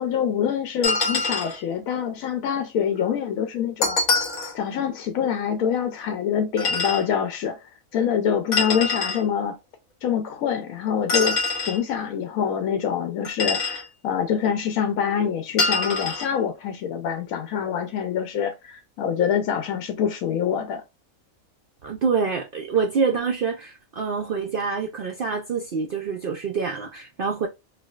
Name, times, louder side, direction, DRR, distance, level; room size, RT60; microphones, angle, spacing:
voice 1, 0.0-4.0 4.5-9.6 10.0-11.4 11.6-20.8, left 8 dB, 80° left, 1.0 m, -25 dB
sound 1, 0.8-1.6 3.8-4.6 6.6-7.1 8.5-9.2 11.1-11.8 13.2-13.8 15.6-16.3, left 3 dB, 65° left, 1.5 m, -24 dB
voice 2, 21.8-27.5, right 5 dB, 65° right, 0.5 m, -26 dB
4.6 x 2.1 x 2.3 m
omnidirectional pair, 1.4 m